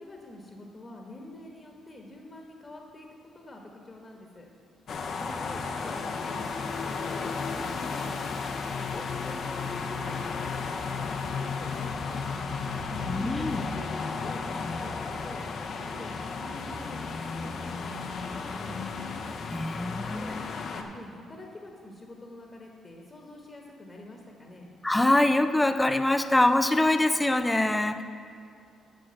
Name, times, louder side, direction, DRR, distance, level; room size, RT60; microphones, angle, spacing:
voice 1, 0.0-4.4 5.2-8.4 8.9-12.6 13.4-15.4 15.7-19.2 20.1-24.7, left 2 dB, 25° left, 0 dB, 1.3 m, -46 dB
sound 1, 4.9-20.8, left 4 dB, 60° left, 0.8 m, -34 dB
sound 2, 8.7-13.8, left 8 dB, 80° left, 0.3 m, -39 dB
voice 2, 13.1-13.6 19.5-20.4 24.8-28.0, left 1 dB, 10° left, 9 dB, 0.4 m, -24 dB
8.7 x 6.3 x 6.4 m, 2.5 s
cardioid pair, 90°, 0 cm